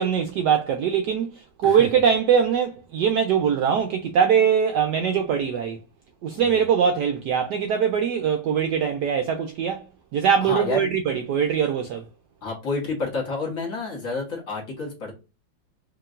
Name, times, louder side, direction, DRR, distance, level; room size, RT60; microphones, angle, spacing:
voice 1, 0.0-5.8 6.2-9.8 10.1-12.0, right 7 dB, 75° right, 1.0 m, -22 dB
voice 2, 10.4-10.9 12.4-15.1, left 3 dB, 45° left, 1.6 m, -29 dB
4.8 x 3.0 x 2.4 m
omnidirectional pair, 2.2 m